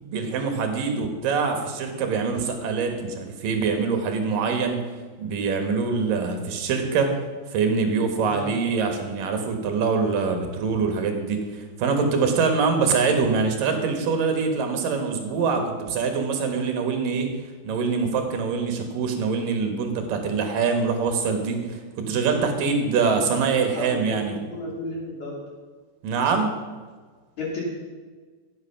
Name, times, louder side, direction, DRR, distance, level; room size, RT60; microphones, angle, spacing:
voice 1, 0.0-4.8 5.2-7.1 7.5-17.3 17.6-24.4 26.0-26.5, right 5 dB, 65° right, 5 dB, 2.6 m, -24 dB
voice 2, 23.7-24.2 24.4-25.4 27.4-27.6, left 1 dB, 45° left, -3 dB, 3.6 m, -32 dB
15.5 x 8.7 x 5.8 m, 1.4 s
omnidirectional pair, 5.1 m